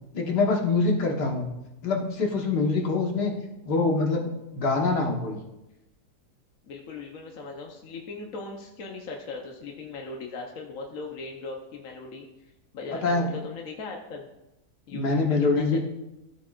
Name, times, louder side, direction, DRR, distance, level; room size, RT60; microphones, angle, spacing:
voice 1, 0.1-1.6 1.8-3.3 3.6-5.4 12.9-13.3 14.9-15.8, left 3 dB, 85° left, 1 dB, 1.9 m, -25 dB
voice 2, 6.6-14.3 14.9-15.8, left 4 dB, 60° left, 1 dB, 1.2 m, -39 dB
14.5 x 7.5 x 2.5 m, 0.94 s
omnidirectional pair, 1.7 m